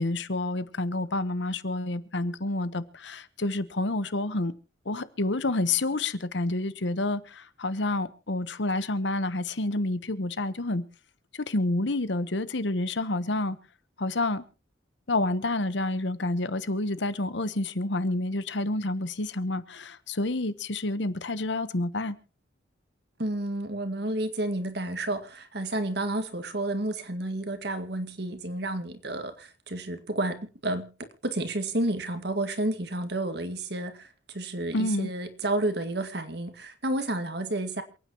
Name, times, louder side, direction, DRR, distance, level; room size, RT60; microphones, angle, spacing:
voice 1, 0.0-4.5 4.9-10.8 11.4-13.6 14.0-14.4 15.1-22.2 34.7-35.1, left 2 dB, 70° left, 1.1 m, -29 dB
voice 2, 23.2-30.9 31.2-37.8, right 1 dB, 60° right, 1.9 m, -31 dB
28.0 x 9.4 x 3.0 m
head